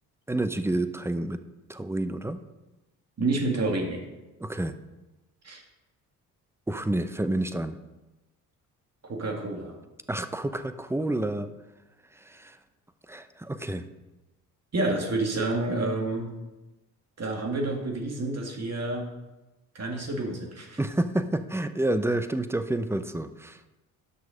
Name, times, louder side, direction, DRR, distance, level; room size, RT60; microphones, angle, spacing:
voice 1, 0.3-1.4 1.7-2.4 4.4-4.8 6.7-7.8 10.1-11.5 12.2-12.6 13.1-13.9 20.8-23.6, right 1 dB, 5° right, 11 dB, 0.7 m, -29 dB
voice 2, 3.2-4.1 5.4-5.6 9.0-9.8 14.7-16.3 17.2-19.1 19.7-20.8, right 2 dB, 35° right, 2 dB, 2.3 m, -29 dB
10.0 x 6.2 x 5.2 m, 1.0 s
hypercardioid pair, 50°, 43 cm